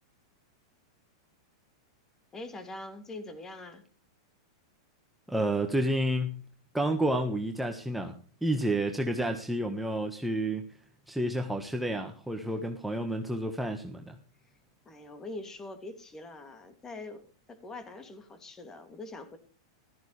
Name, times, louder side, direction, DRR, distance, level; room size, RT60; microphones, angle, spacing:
voice 1, 2.3-3.8 14.8-17.2 17.5-19.4, left 2 dB, 20° left, 7 dB, 2.7 m, -43 dB
voice 2, 5.3-6.4 6.7-8.2 8.4-10.6 11.1-14.2, right 1 dB, 5° right, 3 dB, 1.5 m, -30 dB
15.0 x 13.5 x 3.4 m, 0.38 s
hypercardioid pair, 105°, 2 cm